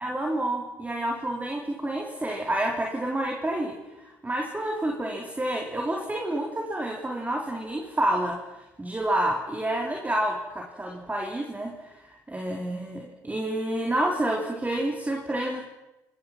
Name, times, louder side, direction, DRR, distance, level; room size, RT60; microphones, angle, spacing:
voice 1, 0.0-8.4 8.8-15.6, right 1 dB, 15° right, 0 dB, 4.3 m, -29 dB
30.0 x 21.5 x 6.1 m, 0.98 s
hypercardioid pair, 55°, 9 cm